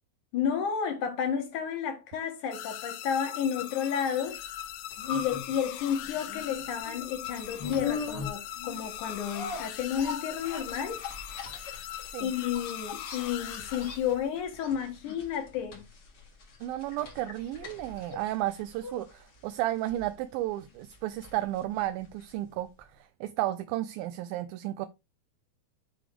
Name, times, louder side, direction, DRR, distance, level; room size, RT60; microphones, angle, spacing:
voice 1, 0.3-4.4 5.1-11.0 12.2-15.8, left 8 dB, 60° left, 2.6 m, -31 dB
sound 1, 2.5-14.4, left 12 dB, 85° left, 2.7 m, -40 dB
sound 2, 4.5-22.5 22.8-22.9, left 5 dB, 45° left, 1.4 m, -41 dB
voice 2, 16.6-22.9 23.2-24.9, right 14 dB, 80° right, 2.2 m, -33 dB
9.8 x 3.3 x 4.9 m
omnidirectional pair, 4.4 m